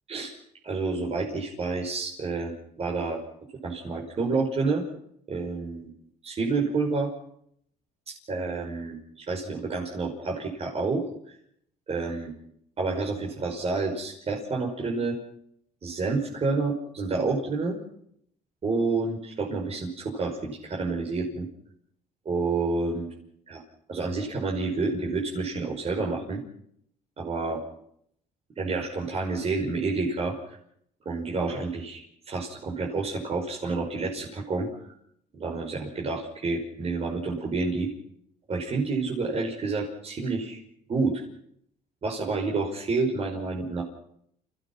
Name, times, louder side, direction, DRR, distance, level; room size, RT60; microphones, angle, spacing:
voice 1, 0.6-3.2 3.6-4.8 5.3-5.9 6.2-7.1 8.1-11.3 11.9-12.3 12.8-15.1 15.8-17.8 18.6-21.5 22.3-23.1 23.5-23.6 23.9-26.4 27.2-27.6 28.6-30.6 31.1-34.7 35.3-37.9 38.5-40.6 40.9-41.2 42.0-43.8, right 3 dB, 35° right, -2 dB, 5.6 m, -29 dB
29.5 x 17.5 x 6.0 m, 0.72 s
cardioid pair, 110°, 17 cm